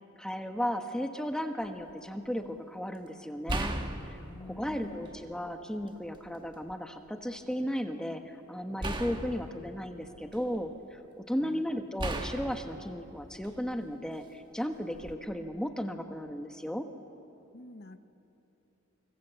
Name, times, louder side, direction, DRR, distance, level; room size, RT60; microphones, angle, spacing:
voice 1, 0.2-3.7 4.1-4.2 4.5-11.0 11.3-16.8, equal, 5° left, 5 dB, 1.1 m, -35 dB
sound 1, 1.6-1.9 3.5-5.3 5.8-6.7 8.8-10.8 12.0-13.9 14.9-15.2, right 1 dB, 20° right, 1.5 m, -37 dB
voice 2, 4.2-5.1 11.4-11.7 17.5-18.0, left 2 dB, 50° left, 9 dB, 1.1 m, -48 dB
26.0 x 25.0 x 8.1 m, 3.0 s
head